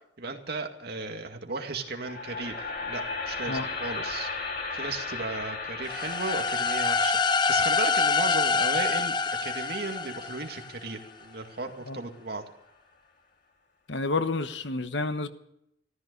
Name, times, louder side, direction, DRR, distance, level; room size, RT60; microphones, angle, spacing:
voice 1, 0.2-4.3 4.7-12.4, right 3 dB, 60° right, 4 dB, 2.2 m, -36 dB
sound 1, 1.8-11.9, left 4 dB, 55° left, 3.0 m, -37 dB
sound 2, 5.9-10.7, left 4 dB, 25° left, 0.6 m, -26 dB
voice 2, 13.9-15.3, left 3 dB, 80° left, 10 dB, 1.2 m, -29 dB
14.0 x 14.0 x 6.7 m, 0.78 s
head